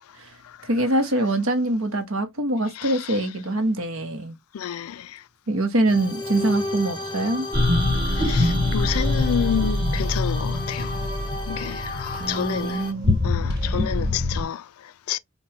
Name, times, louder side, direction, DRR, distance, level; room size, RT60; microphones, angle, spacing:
voice 1, 0.6-4.4 5.5-7.5 12.1-13.1, right 1 dB, 65° right, 0.9 m, -24 dB
voice 2, 2.7-3.3 4.5-5.2 8.1-11.0 11.5-12.9 13.2-15.2, left 9 dB, 75° left, 0.3 m, -30 dB
sound 1, 5.9-12.9, left 2 dB, 20° left, 0.6 m, -33 dB
sound 2, 7.5-14.4, left 2 dB, 50° right, 1.9 m, -24 dB
5.2 x 2.2 x 2.9 m
head